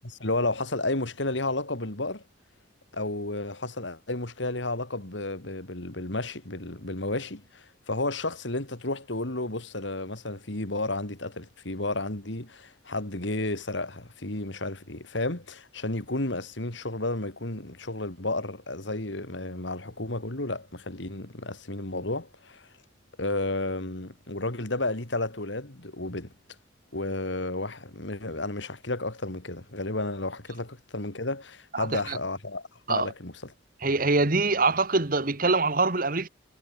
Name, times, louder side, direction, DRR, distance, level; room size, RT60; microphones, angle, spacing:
voice 1, 0.0-2.2 2.9-22.6 23.2-26.3 26.9-33.5, left 2 dB, 70° left, 3.0 m, -32 dB
voice 2, 31.7-32.2 32.9-33.1 33.8-36.3, right 3 dB, 45° right, 1.7 m, -24 dB
head